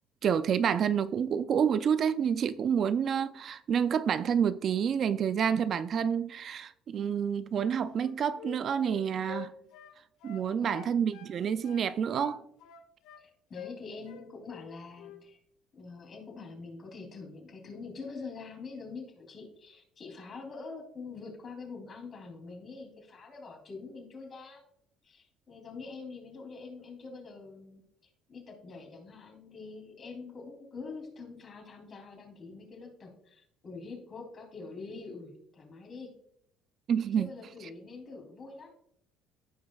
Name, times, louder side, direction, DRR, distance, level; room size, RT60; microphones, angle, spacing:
voice 1, 0.2-9.5 10.2-12.4 36.9-37.3, right 7 dB, 50° right, 0.4 m, -28 dB
Wind instrument woodwind instrument, 7.9-11.3 11.6-13.2 13.5-13.8 14.1-14.7 15.0-15.2, left 9 dB, 75° left, 0.9 m, -47 dB
voice 2, 10.3-10.9 13.2-15.4 15.7-24.6 25.0-36.1 37.1-38.7, left 4 dB, 40° left, 2.9 m, -45 dB
14.5 x 5.1 x 2.3 m
cardioid pair, 100°, 0 cm